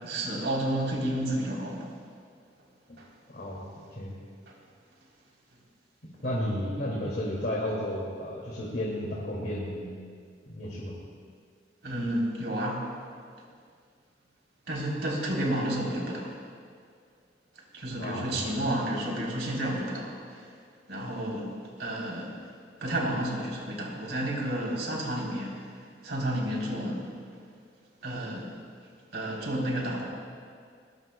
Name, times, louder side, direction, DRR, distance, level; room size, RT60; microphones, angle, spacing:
voice 1, 0.0-1.9 3.0-3.1 4.5-4.6 11.8-12.9 14.7-16.4 17.7-20.5 20.9-21.5 21.8-22.4 22.8-25.8 26.0-27.1 28.0-28.5 29.1-30.0, right 1 dB, 70° right, -2 dB, 3.6 m, -31 dB
voice 2, 3.3-4.1 6.2-9.9 10.5-11.0 18.0-18.6, left 1 dB, 60° left, -5 dB, 2.4 m, -33 dB
21.0 x 20.5 x 2.3 m, 2.1 s
head